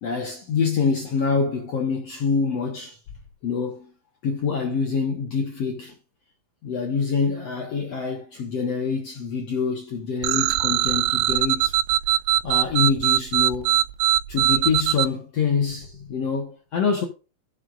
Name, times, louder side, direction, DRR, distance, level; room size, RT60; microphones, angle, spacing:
voice 1, 0.0-3.0 3.4-3.9 4.2-5.9 6.6-11.7 12.4-13.8 14.3-17.1, left 5 dB, 65° left, 1.6 m, -25 dB
sound 1, 10.2-15.1, right 13 dB, 90° right, 2.6 m, -21 dB
18.0 x 6.2 x 2.5 m
omnidirectional pair, 4.5 m